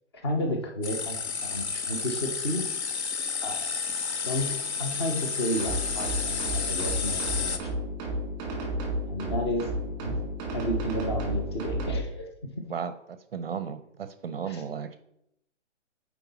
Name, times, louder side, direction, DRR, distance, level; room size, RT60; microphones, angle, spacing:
voice 1, 0.1-2.6 3.4-3.7 4.2-7.7 9.1-9.7 10.0-10.2 10.5-12.3 12.6-12.7 14.5-14.6, left 1 dB, 20° left, 3 dB, 0.6 m, -32 dB
sound 1, 0.8-7.6, left 5 dB, 60° left, 0.8 m, -31 dB
sound 2, 5.6-12.0, right 1 dB, 10° right, 1.2 m, -32 dB
voice 2, 12.7-15.0, right 7 dB, 50° right, 11 dB, 0.5 m, -35 dB
7.9 x 4.6 x 4.0 m, 0.78 s
hypercardioid pair, 170°, 37 cm